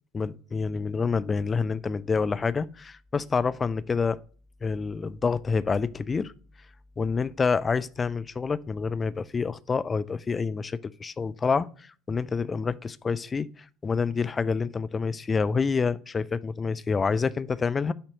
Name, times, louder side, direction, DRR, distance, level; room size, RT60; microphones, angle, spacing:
voice 1, 0.1-4.2 4.6-6.3 7.0-17.9, left 5 dB, 25° left, 0.4 m, -27 dB
7.7 x 2.9 x 5.1 m
figure-of-eight pair, 60°, 0 cm